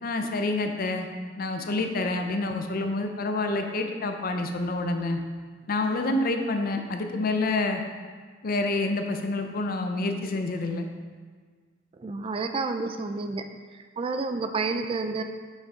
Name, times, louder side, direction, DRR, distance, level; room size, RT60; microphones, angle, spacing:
voice 1, 0.0-1.1 1.4-5.2 5.7-7.8 8.4-10.9, left 2 dB, 50° left, 5 dB, 0.5 m, -28 dB
voice 2, 12.0-13.4 14.0-15.2, right 3 dB, 30° right, 7 dB, 0.3 m, -29 dB
6.3 x 5.4 x 3.7 m, 1.5 s
head